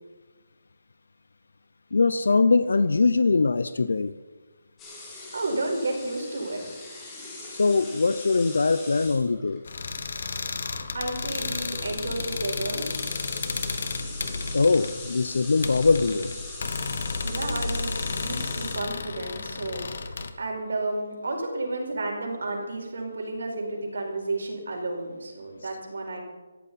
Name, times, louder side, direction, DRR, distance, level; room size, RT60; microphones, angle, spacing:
voice 1, 1.9-4.1 7.5-9.6 14.5-16.3, left 4 dB, 65° left, 13 dB, 0.6 m, -22 dB
sound 1, 4.8-9.6 10.7-10.9 11.1-19.0, left 2 dB, 10° left, 2.3 m, -41 dB
voice 2, 5.3-6.6 10.9-12.9 17.2-19.8 20.4-26.2, right 2 dB, 65° right, 1 dB, 4.7 m, -31 dB
sound 2, 9.7-20.3, left 4 dB, 45° left, 1.2 m, -32 dB
18.0 x 14.0 x 4.2 m, 1.3 s
hypercardioid pair, 180°, 0 cm